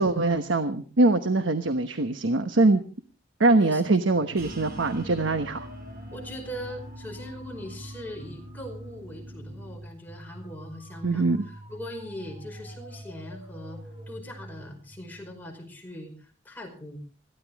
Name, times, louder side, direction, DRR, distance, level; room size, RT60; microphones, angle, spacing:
voice 1, 0.0-2.8 3.4-5.7 11.0-11.4, right 2 dB, 85° right, 9 dB, 1.1 m, -23 dB
sound 1, 4.3-15.7, right 1 dB, 25° right, 7.9 m, -45 dB
sound 2, 4.4-9.8, equal, 55° right, 4.9 m, -45 dB
voice 2, 6.1-13.8 14.1-17.0, equal, 10° left, 1 dB, 5.2 m, -41 dB
21.5 x 15.5 x 3.6 m, 0.37 s
head